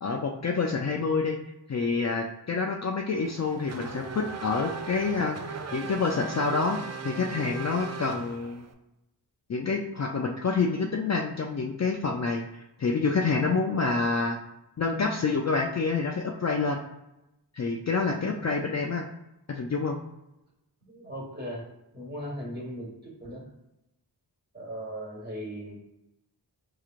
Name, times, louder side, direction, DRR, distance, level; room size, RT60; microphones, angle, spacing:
voice 1, 0.0-1.4 1.7-6.8 7.0-8.6 9.5-12.4 12.8-14.4 14.8-16.8 17.5-19.1 19.5-20.0, left 4 dB, 40° left, 0 dB, 0.4 m, -27 dB
Race car auto racing / Accelerating revving vroom, 3.2-8.7, right 5 dB, 40° right, 0.4 m, -38 dB
voice 2, 20.8-21.7 21.9-23.5 24.5-25.7, equal, 25° right, -3 dB, 1.4 m, -38 dB
4.7 x 3.0 x 2.4 m, 0.91 s
wide cardioid pair, 50°, 42 cm